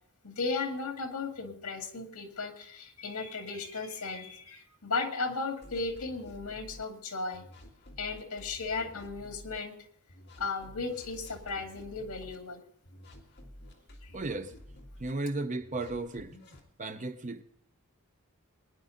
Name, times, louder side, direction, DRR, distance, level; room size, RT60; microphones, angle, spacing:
voice 1, 0.2-7.4 8.0-9.8 10.4-12.6 14.0-14.2, left 4 dB, 80° left, 4 dB, 2.1 m, -35 dB
sound 1, 5.6-6.8 7.3-9.6 10.1-12.4 12.8-15.1 15.6-16.6, equal, 50° left, 2.1 m, -51 dB
voice 2, 14.1-14.5 15.0-16.3 16.8-17.4, right 2 dB, 35° right, 9 dB, 0.7 m, -34 dB
22.5 x 10.5 x 3.8 m, 0.69 s
head